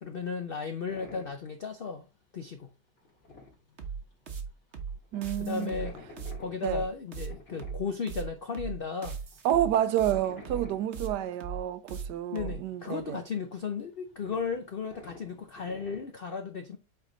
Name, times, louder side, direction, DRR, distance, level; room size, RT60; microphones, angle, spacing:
voice 1, 0.0-2.1 2.3-2.7 5.4-6.0 6.4-9.2 12.3-16.8, left 5 dB, 75° left, 0.5 m, -35 dB
sound 1, 0.9-1.6 1.9-2.4 2.6-2.7 3.0-4.4 4.7-8.4 8.8-8.9 9.2-11.0 11.4-11.5 11.9-12.2 12.4-16.0, left 2 dB, 40° left, 2.3 m, -50 dB
sound 2, 3.8-12.6, right 6 dB, 45° right, 1.1 m, -38 dB
voice 2, 5.1-5.8 6.6-6.8 9.4-13.2, right 11 dB, 75° right, 1.2 m, -29 dB
8.1 x 3.5 x 3.9 m
omnidirectional pair, 1.9 m